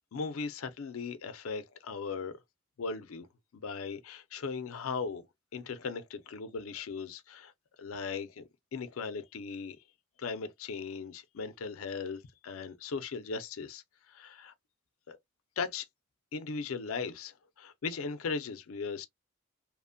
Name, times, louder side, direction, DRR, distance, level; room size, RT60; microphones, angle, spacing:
voice 1, 0.1-2.4 2.8-3.3 3.5-5.2 5.5-7.5 7.8-9.8 10.2-14.5 15.1-15.2 15.6-15.9 16.3-19.1, left 5 dB, 80° left, 0.5 m, -38 dB
2.9 x 2.1 x 2.5 m
head